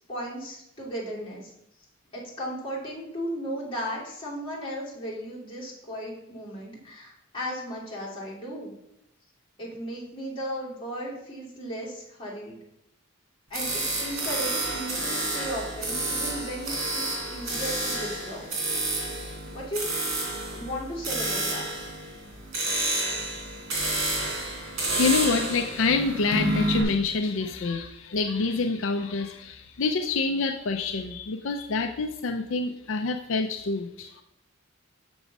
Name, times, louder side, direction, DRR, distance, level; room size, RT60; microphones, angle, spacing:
voice 1, 0.1-1.5 2.1-8.7 9.6-12.6 13.5-18.5 19.5-19.8 20.1-21.6, equal, 25° left, -6 dB, 2.7 m, -36 dB
sound 1, 13.5-26.8, right 2 dB, 70° right, 3.4 m, -30 dB
voice 2, 24.6-34.2, left 4 dB, 70° left, 6 dB, 0.5 m, -27 dB
7.0 x 6.1 x 5.3 m, 0.83 s
head